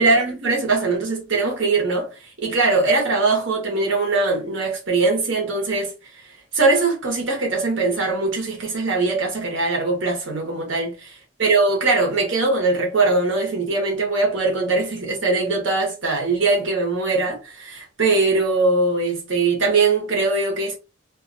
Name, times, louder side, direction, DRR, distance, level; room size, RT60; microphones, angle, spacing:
voice 1, 0.0-5.9 6.5-11.1 11.4-20.7, right 3 dB, 75° right, 1.0 m, -21 dB
2.4 x 2.3 x 2.5 m
head